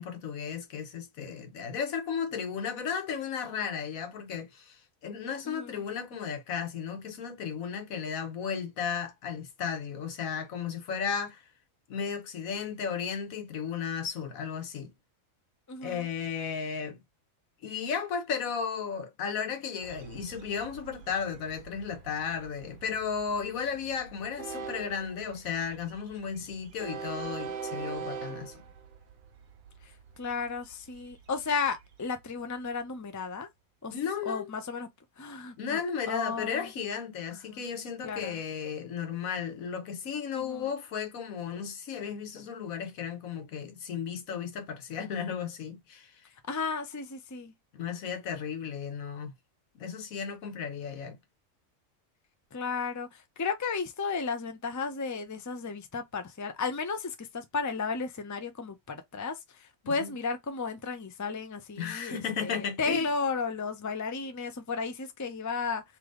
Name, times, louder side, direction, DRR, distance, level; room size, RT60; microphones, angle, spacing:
voice 1, 0.0-4.8 5.0-11.4 11.9-14.9 15.8-17.0 17.6-28.5 33.9-34.5 35.6-46.1 47.7-49.3 49.8-51.2 59.8-60.1 61.8-63.0, left 7 dB, 80° left, 1.4 m, -34 dB
voice 2, 5.4-5.8 15.7-16.1 29.8-33.5 33.8-33.9 34.2-34.9 35.2-35.8 36.1-36.7 37.3-37.6 38.0-38.4 40.3-40.7 46.5-47.5 52.5-65.8, left 4 dB, 25° left, 0.4 m, -34 dB
Train, 19.8-32.8, right 6 dB, 55° right, 0.6 m, -44 dB
3.4 x 3.0 x 3.8 m
omnidirectional pair, 1.4 m